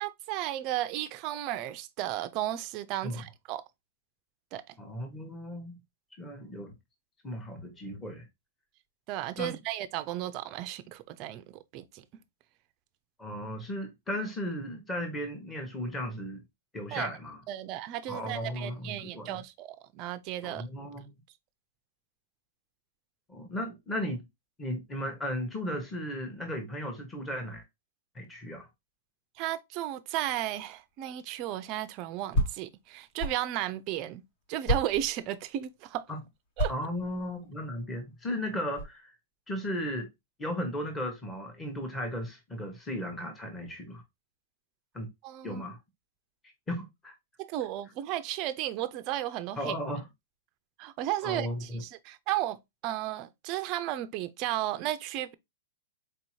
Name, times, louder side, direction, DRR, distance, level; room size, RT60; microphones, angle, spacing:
voice 1, 0.0-3.6 4.5-4.6 9.1-12.0 16.9-17.1 17.5-20.6 29.4-34.2 34.5-36.1 36.6-36.7 45.2-45.6 47.4-49.7 50.8-55.3, right 13 dB, 30° right, 0.3 m, -34 dB
voice 2, 4.8-5.8 6.2-6.7 7.2-8.3 9.4-9.6 13.2-16.4 16.7-17.4 18.1-19.4 20.4-21.2 23.3-24.2 24.6-27.6 28.1-28.7 36.1-36.2 36.7-39.1 39.5-40.1 40.4-44.0 44.9-45.1 45.4-45.8 46.7-47.1 49.6-50.0 51.2-51.8, equal, 10° left, 0.9 m, -35 dB
sound 1, 30.7-30.8 31.2-33.4 33.9-34.0 34.6-35.5 36.4-38.9, equal, 45° left, 0.9 m, -31 dB
4.0 x 2.6 x 3.0 m
hypercardioid pair, 160°, 0 cm